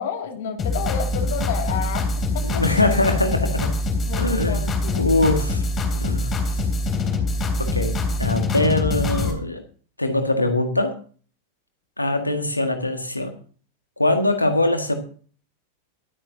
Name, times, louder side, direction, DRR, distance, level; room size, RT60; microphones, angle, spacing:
voice 1, 0.0-2.1 2.3-2.6 4.1-5.0, left 7 dB, 55° left, 5 dB, 2.4 m, -30 dB
sound 1, 0.6-9.3, left 2 dB, 25° left, 3.1 m, -24 dB
voice 2, 2.4-3.7 4.2-4.7 5.0-5.6 5.9-6.3 7.6-9.6 10.0-10.9 12.0-13.3 14.0-14.9, left 1 dB, 85° left, 6 dB, 1.8 m, -22 dB
23.5 x 8.9 x 2.8 m, 0.42 s
figure-of-eight pair, 90°, 0 cm